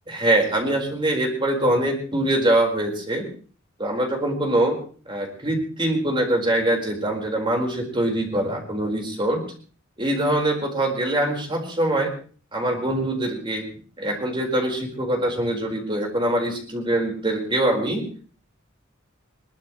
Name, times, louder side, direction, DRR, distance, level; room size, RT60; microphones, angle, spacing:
voice 1, 0.1-3.2 3.8-4.8 5.1-9.4 10.0-12.1 12.5-13.6 14.0-18.0, right 1 dB, 25° right, 1 dB, 5.0 m, -23 dB
22.5 x 19.0 x 3.3 m, 0.41 s
head